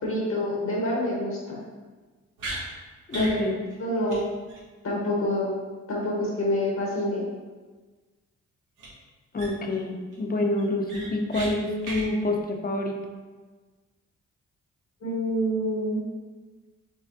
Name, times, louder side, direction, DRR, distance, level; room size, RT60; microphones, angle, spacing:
voice 1, 0.0-1.6 3.1-3.3 3.8-4.2 4.8-5.5 5.9-7.2 15.0-16.1, equal, 60° left, -4 dB, 1.2 m, -27 dB
sound 1, 2.4-2.6 3.1-3.4 3.7-3.8 4.1-4.2 4.5-4.6 8.8-8.9 9.3-9.7 10.1-10.2 10.6-11.5 11.8-12.0, right 2 dB, 75° right, 1.3 m, -35 dB
voice 2, 3.1-3.5 9.3-13.0, left 2 dB, 30° left, 2 dB, 0.7 m, -27 dB
5.1 x 3.1 x 2.6 m, 1.3 s
cardioid pair, 60°, 32 cm